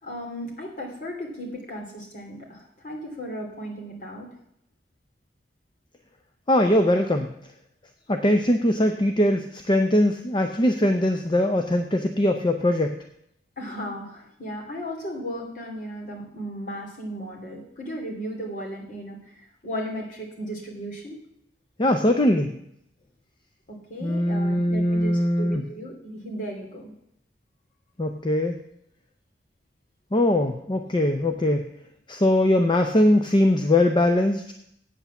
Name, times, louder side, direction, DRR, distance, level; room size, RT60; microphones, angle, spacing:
voice 1, 0.0-4.3 13.6-21.2 23.7-26.9, equal, 50° left, 0 dB, 2.8 m, -35 dB
voice 2, 6.5-7.3 8.1-13.0 21.8-22.5 24.0-25.6 28.0-28.6 30.1-31.7 32.1-34.5, left 1 dB, 25° left, 5 dB, 0.6 m, -21 dB
8.4 x 8.1 x 7.0 m, 0.75 s
head